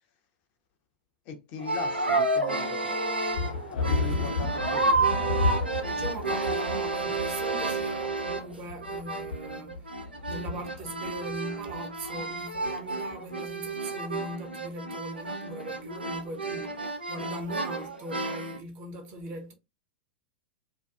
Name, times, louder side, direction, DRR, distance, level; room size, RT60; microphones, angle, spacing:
voice 1, 1.3-2.9 3.7-5.0, left 5 dB, 40° left, 0.5 m, -39 dB
sound 1, 1.6-8.6 8.8-18.6, right 3 dB, 85° right, 0.4 m, -31 dB
sound 2, 3.3-13.3, left 3 dB, 70° left, 0.8 m, -33 dB
voice 2, 4.0-4.6 5.9-19.5, right 2 dB, 35° right, 0.7 m, -40 dB
2.5 x 2.2 x 2.2 m
figure-of-eight pair, 95°, 5 cm